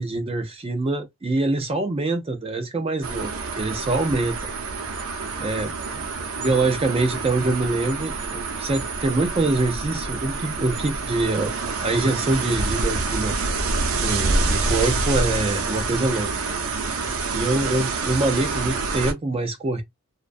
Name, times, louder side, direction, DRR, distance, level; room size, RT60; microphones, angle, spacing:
voice 1, 0.0-4.4 5.4-5.7 6.4-11.5 11.8-13.4 14.0-16.3 16.9-19.8, right 2 dB, 25° right, 0.3 m, -24 dB
sound 1, 3.0-19.1, right 3 dB, 70° right, 0.5 m, -27 dB
2.4 x 2.2 x 2.4 m
head